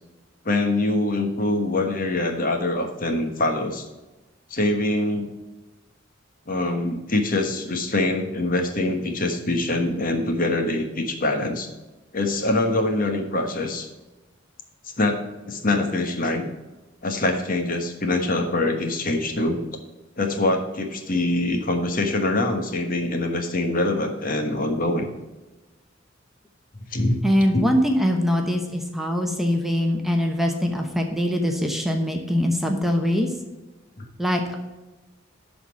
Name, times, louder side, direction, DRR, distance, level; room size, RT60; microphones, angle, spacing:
voice 1, 0.4-3.9 4.5-5.3 6.5-11.7 12.1-13.9 15.0-16.5 17.0-19.6 20.2-25.1 26.9-27.2 27.5-27.7, left 2 dB, 50° left, 5 dB, 1.3 m, -24 dB
voice 2, 27.2-33.3 34.2-34.6, equal, ahead, 2 dB, 0.9 m, -22 dB
11.0 x 4.3 x 7.1 m, 1.1 s
head